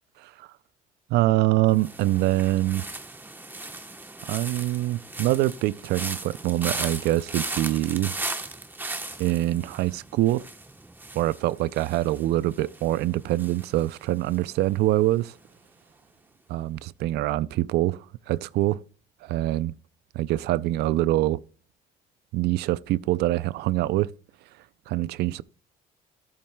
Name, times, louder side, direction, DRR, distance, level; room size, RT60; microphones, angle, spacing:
voice 1, 1.1-2.8 4.3-8.2 9.2-10.5 11.1-15.3 16.5-18.8 19.2-19.7 20.1-21.4 22.3-24.1 24.9-25.4, right 16 dB, 75° right, 0.4 m, -24 dB
sound 1, 1.7-14.8 15.0-15.5, right 2 dB, 10° right, 1.0 m, -37 dB
14.0 x 8.8 x 2.2 m
cardioid pair, 110°, 17 cm